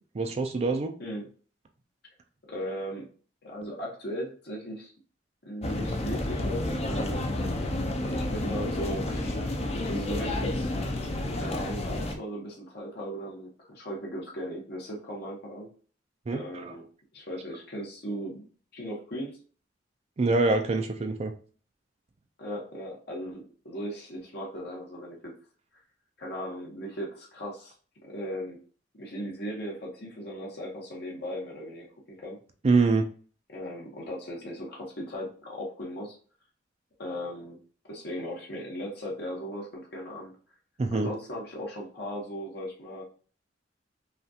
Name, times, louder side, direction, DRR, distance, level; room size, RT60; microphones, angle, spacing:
voice 1, 0.1-0.9 16.3-16.7 20.2-21.3 32.6-33.1 40.8-41.1, right 3 dB, 35° right, 5 dB, 0.4 m, -25 dB
voice 2, 2.5-3.1 3.4-4.9 5.4-9.5 9.9-11.0 11.3-15.7 16.3-16.8 17.1-18.4 18.7-19.4 22.4-25.3 26.2-27.7 28.0-28.6 29.0-32.4 33.5-36.1 37.0-37.6 37.9-40.3 40.9-43.0, equal, 60° left, -2 dB, 1.2 m, -37 dB
sound 1, 5.6-12.1, left 1 dB, 35° left, 0.6 m, -30 dB
5.5 x 2.4 x 2.8 m, 0.41 s
head